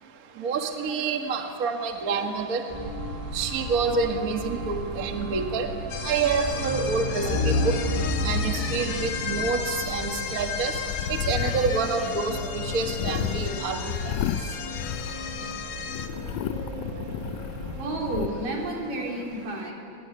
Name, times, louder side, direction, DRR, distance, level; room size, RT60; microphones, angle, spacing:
voice 1, 0.4-2.6 3.3-5.7 6.0-7.8 8.2-10.7 11.1-14.1, right 4 dB, 40° right, 5 dB, 1.4 m, -27 dB
sound 1, 2.7-18.4, left 1 dB, 10° right, 5.7 m, -33 dB
sound 2, 5.9-16.1, left 7 dB, 60° left, 2.4 m, -35 dB
sound 3, 10.7-15.5 15.9-18.3, left 10 dB, 80° left, 1.5 m, -32 dB
voice 2, 17.8-19.7, right 2 dB, 75° right, 0 dB, 5.6 m, -31 dB
23.0 x 22.5 x 9.8 m, 2.4 s
omnidirectional pair, 3.9 m